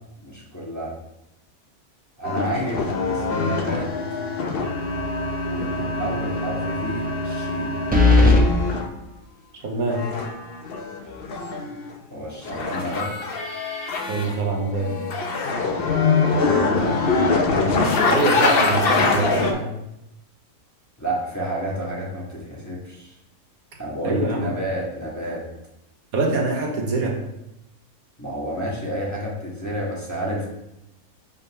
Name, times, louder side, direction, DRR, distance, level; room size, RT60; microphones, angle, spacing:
voice 1, 0.2-0.9 2.2-3.9 5.4-7.7 12.1-13.1 16.6-17.3 21.0-23.1 23.8-25.5 28.2-30.5, equal, 10° left, -6 dB, 1.4 m, -30 dB
sound 1, 2.2-8.9 9.9-11.9 12.4-14.4 14.7-19.5, left 3 dB, 50° left, 0.8 m, -24 dB
sound 2, 4.8-5.3 5.6-5.7 7.9-8.4, left 3 dB, 10° right, 0.6 m, -15 dB
voice 2, 9.6-10.0 14.1-15.0 18.0-19.7 24.0-24.5 26.1-27.2, right 3 dB, 75° right, 1 dB, 1.5 m, -24 dB
5.3 x 3.8 x 5.4 m, 0.87 s
omnidirectional pair, 1.5 m